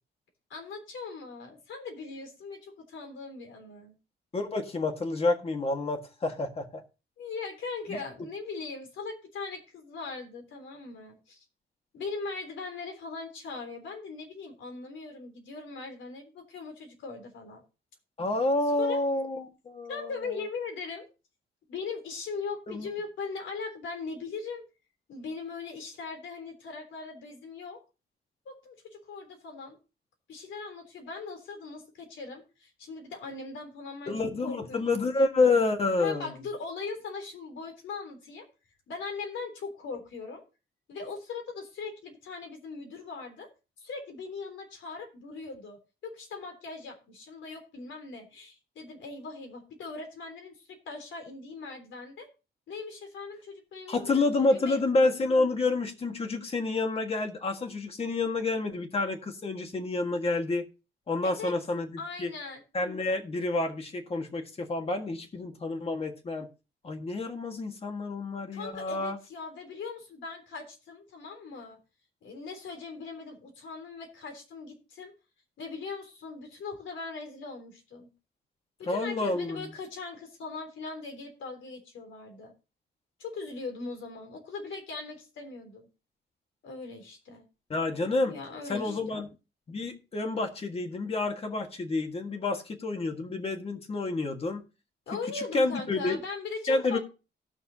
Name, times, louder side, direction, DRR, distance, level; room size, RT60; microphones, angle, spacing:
voice 1, 0.5-3.9 7.2-11.4 11.9-17.6 18.8-19.0 19.9-21.1 21.7-24.6 25.1-27.8 28.5-29.8 30.3-34.1 34.4-35.0 36.0-38.5 38.9-40.4 40.9-43.5 43.8-52.3 52.7-54.8 61.2-61.5 62.0-62.6 68.5-71.8 72.2-75.1 75.6-78.1 78.8-82.5 83.2-85.9 86.6-87.4 88.2-89.2 95.1-97.0, left 4 dB, 90° left, 4 dB, 3.5 m, -40 dB
voice 2, 4.3-6.8 7.9-8.0 18.2-20.1 22.7-22.9 34.1-36.3 53.9-60.6 61.1-61.9 62.2-62.3 62.7-66.5 66.8-69.2 78.9-79.6 87.7-88.4 88.7-89.3 89.7-94.6 95.3-96.2 96.7-97.0, left 3 dB, 30° left, 5 dB, 1.6 m, -29 dB
18.0 x 6.6 x 2.8 m, 0.31 s
wide cardioid pair, 165°, 19 cm